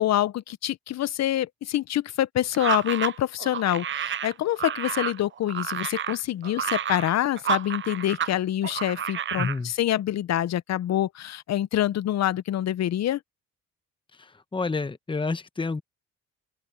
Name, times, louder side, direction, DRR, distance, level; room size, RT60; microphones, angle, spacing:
voice 1, 0.0-13.2, left 12 dB, 60° left, 0.8 m, -26 dB
sound 1, 2.5-8.3 8.6-9.6, right 9 dB, 40° right, 0.6 m, -30 dB
voice 2, 9.4-9.7 14.1-15.8, left 3 dB, 15° left, 1.1 m, -30 dB
open air
cardioid pair, 90°, 30 cm